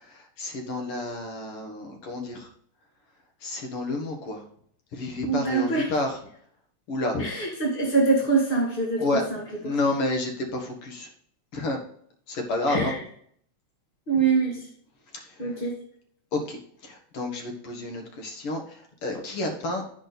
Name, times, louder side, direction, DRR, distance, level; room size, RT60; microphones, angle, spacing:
voice 1, 0.1-2.5 3.4-4.4 4.9-6.2 6.9-7.3 9.0-9.2 9.6-11.1 11.5-11.8 12.3-13.0 16.3-16.6 16.8-19.8, left 2 dB, 50° left, 2 dB, 2.1 m, -30 dB
voice 2, 5.2-5.9 7.2-9.4 12.7-13.0 14.1-14.6 15.4-15.8, right 4 dB, 35° left, -2 dB, 0.8 m, -24 dB
10.5 x 5.0 x 4.1 m, 0.63 s
omnidirectional pair, 3.6 m